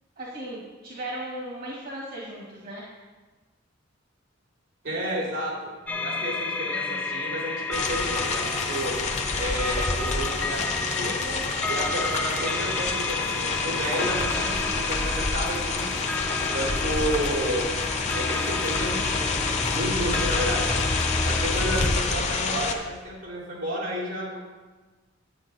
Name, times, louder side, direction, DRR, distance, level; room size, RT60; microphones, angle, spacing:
voice 1, 0.2-2.9, right 1 dB, 50° right, -4 dB, 1.7 m, -36 dB
voice 2, 4.8-8.9 9.4-10.6 10.9-15.9 16.4-17.7 18.1-20.9 21.2-24.4, equal, 80° right, -4 dB, 3.6 m, -31 dB
sound 1, 5.9-22.0, left 2 dB, 10° left, 0.4 m, -30 dB
sound 2, 7.7-22.7, left 4 dB, 35° left, 0.8 m, -28 dB
9.5 x 9.4 x 4.0 m, 1.3 s
head